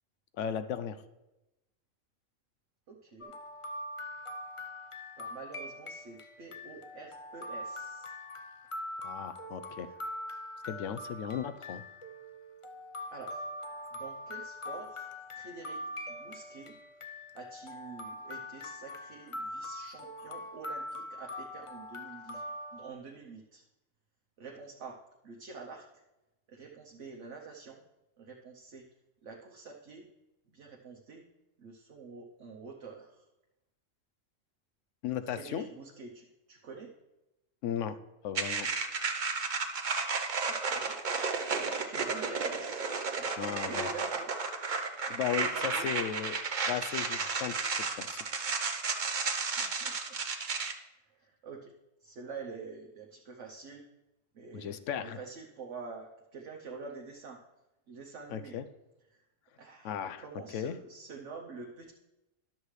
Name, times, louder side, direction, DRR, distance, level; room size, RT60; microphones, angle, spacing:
voice 1, 0.4-1.0 9.0-9.9 10.6-11.8 35.0-35.7 37.6-38.0 38.2-38.7 43.4-43.9 45.1-47.5 47.9-48.2 54.5-55.2 58.3-58.6 59.8-60.2 60.5-60.8, left 9 dB, 75° left, 12 dB, 0.9 m, -36 dB
voice 2, 2.9-3.3 5.2-8.1 9.9-10.0 13.1-13.5 13.9-16.7 17.3-23.6 24.4-25.9 26.5-27.8 28.2-28.9 29.2-30.1 30.5-31.3 31.6-33.3 35.3-36.9 40.4-41.0 41.6-42.8 43.1-44.3 44.9-45.9 49.6-50.2 51.1-51.7 52.0-53.9 54.3-57.4 57.9-58.6 59.1-59.2 59.6-61.9, right 4 dB, 70° right, 0 dB, 1.2 m, -47 dB
sound 1, 3.2-22.9, left 1 dB, 40° left, 0.5 m, -43 dB
sound 2, 38.3-50.7, right 4 dB, 45° right, 0.8 m, -33 dB
12.0 x 7.4 x 3.2 m, 0.97 s
omnidirectional pair, 1.3 m